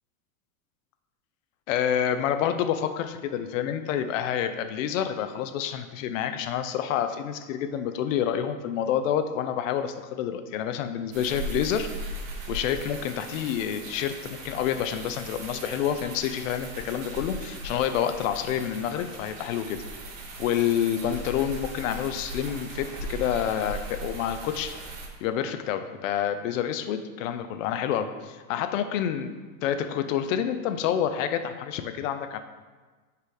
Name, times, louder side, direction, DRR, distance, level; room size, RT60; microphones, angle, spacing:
voice 1, 1.7-11.9 12.5-19.8 20.4-24.9 25.2-29.3 29.6-32.4, left 9 dB, 60° left, 9 dB, 0.6 m, -28 dB
sound 1, 11.1-25.1, right 1 dB, 55° right, 1.4 m, -38 dB
5.5 x 4.9 x 3.9 m, 1.3 s
supercardioid pair, 150°, 46 cm